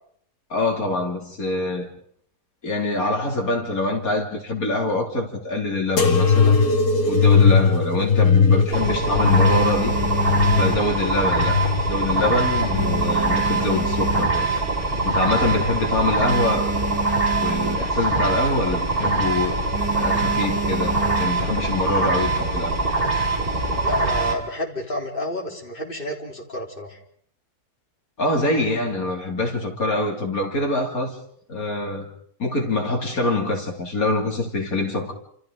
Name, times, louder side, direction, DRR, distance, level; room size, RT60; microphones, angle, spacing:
voice 1, 0.5-1.9 2.6-6.6 7.1-10.0 10.5-11.6 11.9-14.5 15.0-16.7 17.4-19.5 20.0-22.9 28.2-31.2 31.5-32.1 32.4-35.1, left 2 dB, 65° left, 3.6 m, -24 dB
sound 1, 6.0-13.2 13.7-14.5 15.2-15.8 16.7-16.8, left 5 dB, 80° left, 2.4 m, -20 dB
sound 2, 7.9-8.6 9.0-11.5 11.8-12.2 12.5-14.7 15.2-15.3 15.5-15.6 15.9-18.1 18.4-18.7 19.0-19.3 19.7-21.6 22.3-22.9, right 3 dB, 5° right, 5.0 m, -30 dB
sound 3, 8.7-24.3, right 3 dB, 35° right, 4.1 m, -23 dB
voice 2, 23.8-27.0, left 1 dB, 35° left, 4.0 m, -30 dB
29.5 x 28.0 x 4.0 m
omnidirectional pair, 1.6 m